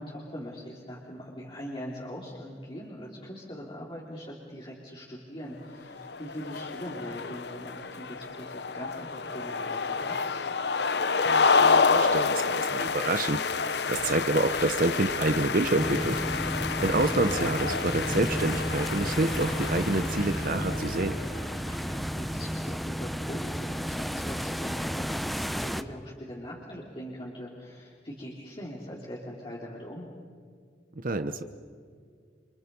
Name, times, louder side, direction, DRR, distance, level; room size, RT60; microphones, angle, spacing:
voice 1, 0.0-10.3 21.3-30.1, equal, 30° left, -4 dB, 3.2 m, -41 dB
sound 1, 5.9-21.5, left 5 dB, 70° left, 0.9 m, -29 dB
voice 2, 11.3-16.2 16.8-21.1 31.0-31.4, right 2 dB, 50° right, 10 dB, 0.9 m, -28 dB
sound 2, 15.8-25.8, equal, ahead, 0.7 m, -32 dB
30.0 x 25.0 x 5.5 m, 2.1 s
head